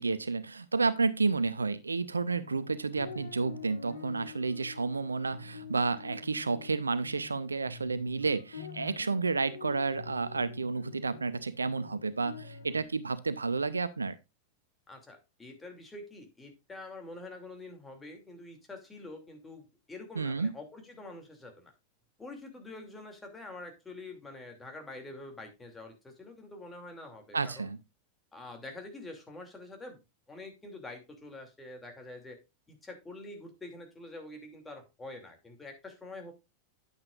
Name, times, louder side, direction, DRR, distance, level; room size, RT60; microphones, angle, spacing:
voice 1, 0.0-14.2 20.2-20.5 27.3-27.8, right 4 dB, 75° right, 0.6 m, -31 dB
sound 1, 2.3-12.9, left 5 dB, 70° left, 1.8 m, -47 dB
voice 2, 14.9-21.7 22.2-27.7 28.3-30.0 30.3-32.4 32.7-36.3, left 2 dB, 10° left, 2.6 m, -46 dB
9.8 x 8.7 x 2.5 m
figure-of-eight pair, 90°, 0 cm